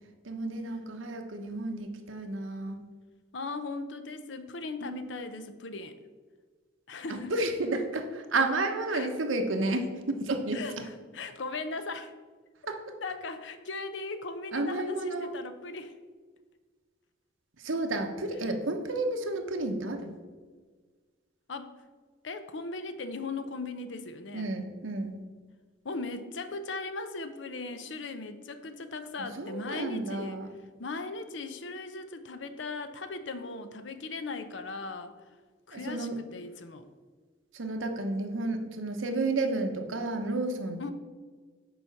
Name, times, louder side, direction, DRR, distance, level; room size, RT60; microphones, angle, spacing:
voice 1, 0.2-2.8 4.8-5.0 7.1-10.6 12.7-12.9 14.5-15.3 17.6-20.2 24.3-25.2 29.4-30.5 35.7-36.2 37.5-40.9, right 2 dB, 90° right, 5 dB, 0.9 m, -31 dB
voice 2, 3.3-6.0 6.9-7.3 8.9-9.1 10.5-12.1 13.0-16.0 18.4-18.5 21.5-21.7 22.2-24.5 25.8-30.4 30.8-35.1 35.7-36.9 40.8-40.9, left 3 dB, 65° left, 10 dB, 0.7 m, -38 dB
6.9 x 5.0 x 5.8 m, 1.5 s
head